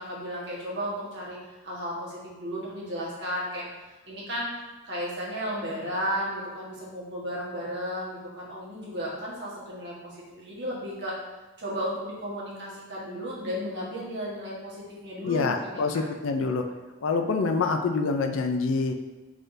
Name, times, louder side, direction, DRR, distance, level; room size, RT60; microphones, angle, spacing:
voice 1, 0.0-1.4 1.6-3.6 4.0-4.5 4.9-11.2 11.6-16.0, equal, 60° right, -6 dB, 1.4 m, -34 dB
voice 2, 15.2-16.7 17.0-18.9, left 4 dB, 90° left, 5 dB, 0.5 m, -26 dB
5.5 x 3.5 x 2.6 m, 1.1 s
head